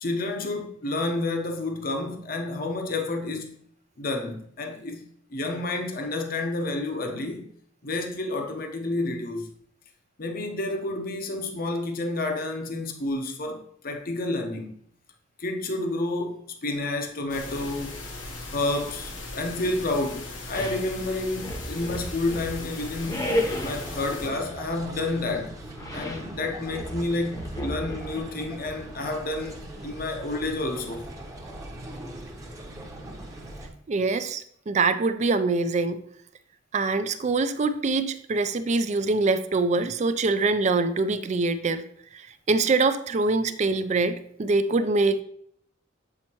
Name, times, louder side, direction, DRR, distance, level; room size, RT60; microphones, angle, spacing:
voice 1, 0.0-3.6 4.0-7.5 7.8-9.5 10.2-14.7 15.4-18.0 18.5-25.5 25.9-31.1, left 2 dB, 50° left, 0.8 m, -30 dB
sound 1, 17.3-24.3, left 2 dB, 90° left, 1.1 m, -38 dB
sound 2, 20.5-20.9 21.4-22.6 23.1-23.9 25.8-26.3 26.7-28.2, left 1 dB, 20° left, 0.8 m, -32 dB
sound 3, 22.8-33.7, right 1 dB, 15° right, 0.9 m, -40 dB
voice 2, 33.9-36.0 36.7-41.8 42.1-42.2 42.5-45.2, right 3 dB, 40° right, 0.4 m, -24 dB
7.7 x 4.3 x 3.0 m
head